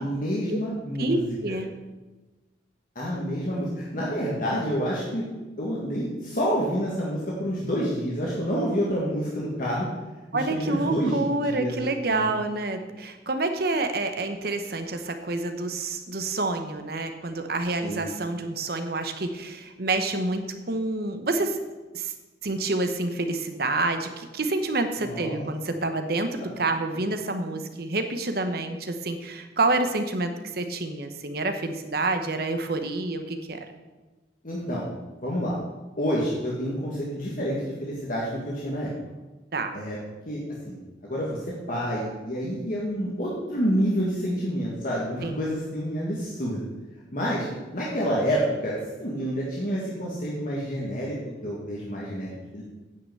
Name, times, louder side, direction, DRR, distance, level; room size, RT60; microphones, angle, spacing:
voice 1, 0.0-1.6 2.9-5.2 5.6-9.9 10.3-12.3 17.8-18.1 25.0-25.4 26.4-26.5 26.9-27.0 34.4-34.9 35.2-35.5 36.0-38.9 39.7-40.0 40.2-40.8 41.0-41.4 41.7-46.7 47.1-47.5 47.7-51.1 51.4-52.6, equal, 45° left, -5 dB, 1.8 m, -28 dB
voice 2, 1.0-1.7 10.3-21.6 21.9-22.1 22.4-33.6 39.5-39.7 45.2-45.5, right 2 dB, 55° right, 7 dB, 1.0 m, -28 dB
9.8 x 5.8 x 7.8 m, 1.2 s
head